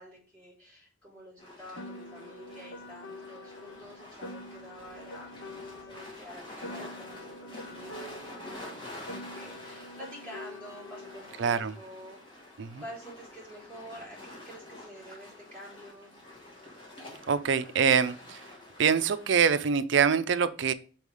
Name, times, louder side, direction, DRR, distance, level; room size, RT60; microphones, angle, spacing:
voice 1, 0.0-12.2 12.8-16.1, equal, 10° left, 3.2 m, -48 dB
sound 1, 1.4-19.4, left 1 dB, 25° left, 1.7 m, -48 dB
Piano, 1.7-6.2 6.6-11.2, left 1 dB, 60° left, 0.7 m, -45 dB
voice 2, 11.4-11.7 12.6-12.8 17.3-18.4 18.8-20.7, right 6 dB, 60° right, 0.4 m, -25 dB
5.4 x 4.6 x 4.8 m
head